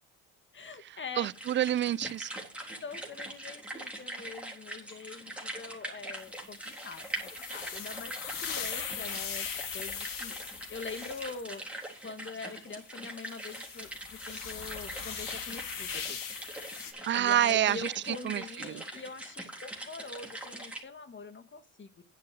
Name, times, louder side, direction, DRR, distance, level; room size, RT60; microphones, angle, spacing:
voice 1, 0.5-1.3 2.8-8.1 8.4-9.5 9.7-10.3 10.7-11.6 12.0-16.2 17.2-21.9, left 4 dB, 30° left, 1.8 m, -43 dB
sound 1, 1.2-20.8, right 1 dB, 5° right, 3.6 m, -43 dB
voice 2, 1.2-2.3 17.1-18.8, right 12 dB, 30° right, 0.4 m, -28 dB
sound 2, 6.2-12.0 12.6-12.7 13.2-16.9, left 7 dB, 50° left, 2.5 m, -40 dB
10.5 x 6.8 x 4.8 m
supercardioid pair, 80°, 41 cm